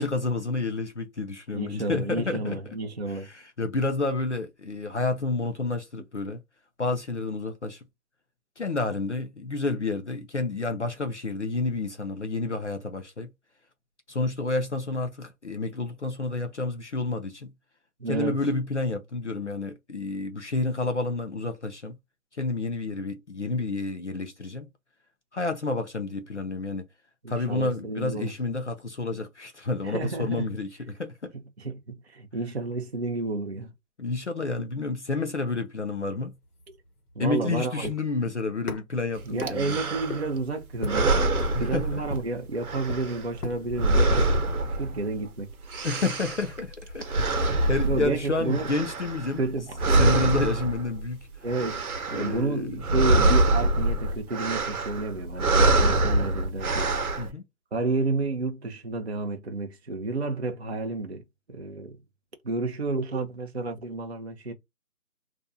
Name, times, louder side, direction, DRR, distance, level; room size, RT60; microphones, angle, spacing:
voice 1, 0.0-2.6 3.1-6.4 6.8-7.8 8.6-13.3 14.1-17.5 18.1-22.0 22.4-24.7 25.3-26.8 27.3-31.3 34.0-36.3 37.2-39.8 41.4-42.0 45.8-49.4 50.0-51.3 52.1-52.8 57.2-57.4, left 3 dB, 50° left, 0.5 m, -30 dB
voice 2, 1.5-3.3 18.0-18.4 27.2-28.3 29.8-30.5 31.6-33.7 37.2-37.9 39.2-44.3 44.8-45.5 47.9-48.7 49.4-49.8 51.4-56.9 57.7-61.2 61.5-62.0 62.4-64.5, right 3 dB, 50° right, 0.5 m, -31 dB
sound 1, 35.8-44.5, left 2 dB, 80° left, 1.0 m, -40 dB
sound 2, 39.4-40.4 40.8-42.3 42.6-45.3 45.5-49.5 49.8-51.0 51.4-52.5 52.7-57.3, right 2 dB, 75° right, 0.8 m, -25 dB
2.5 x 2.0 x 2.6 m
figure-of-eight pair, 175°, 44 cm